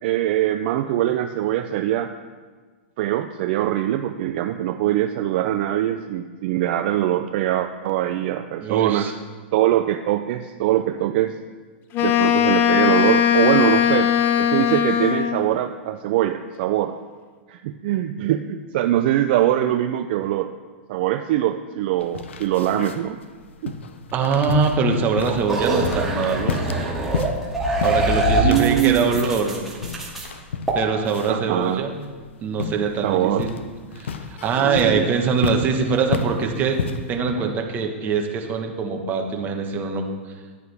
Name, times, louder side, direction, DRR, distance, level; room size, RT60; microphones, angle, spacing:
voice 1, 0.0-2.1 3.0-9.1 9.5-11.4 12.0-14.1 14.4-17.0 17.5-20.5 20.9-23.2 23.6-23.7 28.4-29.1 31.3-31.8 33.0-33.5 34.6-35.1, right 13 dB, 55° right, 8 dB, 0.4 m, -22 dB
voice 2, 8.6-9.1 24.1-26.6 27.8-29.6 30.7-32.0 32.4-33.5 33.9-36.8 37.1-40.0, right 5 dB, 30° right, 3 dB, 1.3 m, -23 dB
Wind instrument woodwind instrument, 11.9-15.5, left 9 dB, 35° left, 0.6 m, -19 dB
sound 1, 22.0-37.2, left 5 dB, 85° left, 0.7 m, -32 dB
sound 2, 25.3-30.3 30.7-30.8, right 2 dB, 5° right, 2.3 m, -24 dB
9.9 x 9.5 x 3.5 m, 1.5 s
hypercardioid pair, 130°, 6 cm